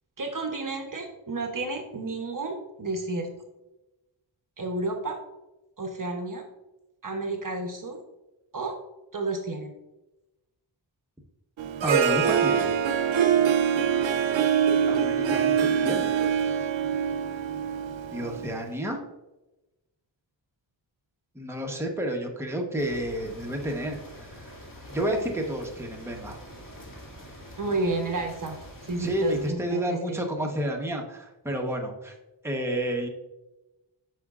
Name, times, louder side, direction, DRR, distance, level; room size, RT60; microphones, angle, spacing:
voice 1, 0.2-3.3 4.6-5.2 5.8-6.4 7.0-8.0 8.5-8.7 9.1-9.7 27.6-30.2, right 3 dB, 45° right, 3 dB, 0.9 m, -31 dB
Harp, 11.6-18.7, right 8 dB, 75° right, 0.7 m, -24 dB
voice 2, 11.8-12.7 14.9-16.1 18.1-19.0 21.3-24.6 24.9-26.4 29.0-32.1 32.4-33.1, equal, 5° right, 1 dB, 1.0 m, -30 dB
sound 1, 22.8-29.5, equal, 45° left, 2.0 m, -45 dB
8.7 x 6.1 x 2.4 m, 0.99 s
wide cardioid pair, 100°, 47 cm